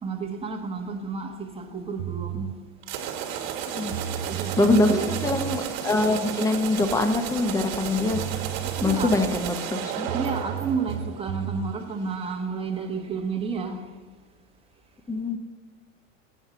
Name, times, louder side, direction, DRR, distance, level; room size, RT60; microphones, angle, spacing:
voice 1, 0.0-2.5 4.3-5.2 8.8-9.3 10.1-13.8, right 4 dB, 15° right, 1.3 m, -31 dB
sound 1, 2.0-2.6 3.6-3.7 3.9-5.6 7.8-7.9 8.1-9.3 10.1-11.8, right 11 dB, 85° right, 0.6 m, -33 dB
sound 2, 2.8-11.5, right 8 dB, 50° right, 1.7 m, -33 dB
voice 2, 4.6-8.2 8.8-10.1 15.1-15.4, left 2 dB, 10° left, 0.9 m, -24 dB
8.1 x 5.7 x 7.9 m
hypercardioid pair, 110°, 39 cm